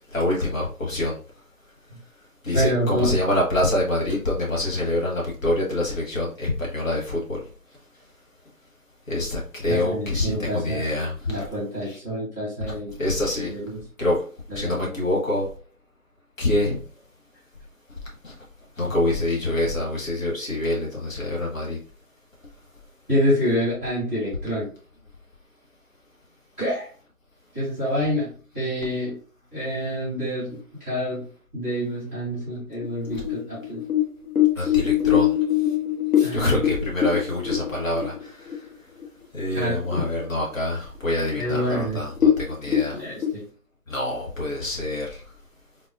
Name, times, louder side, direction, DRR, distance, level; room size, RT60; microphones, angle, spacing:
voice 1, 0.1-1.2 2.4-7.4 9.1-11.4 11.8-12.0 13.0-13.5 14.0-14.2 14.5-15.5 16.4-16.8 18.2-18.3 18.8-21.8 34.6-35.3 36.2-38.3 39.3-43.0 43.9-45.2, left 1 dB, 60° left, 1.5 m, -25 dB
voice 2, 2.5-3.1 9.7-10.9 11.3-12.9 13.4-13.8 14.6-14.9 23.1-24.7 26.6-26.9 27.5-29.2 29.5-31.2 31.5-33.8 34.6-34.7 36.2-36.6 39.5-40.0 41.4-42.0 43.0-43.4, equal, 10° left, 1.3 m, -27 dB
sound 1, 32.8-38.7 39.0-39.1 39.5-40.0 40.5-40.6 41.2-41.3 41.6-41.7 42.1-43.3, left 10 dB, 80° left, 1.2 m, -22 dB
3.9 x 2.7 x 2.3 m
figure-of-eight pair, 165°, 45 cm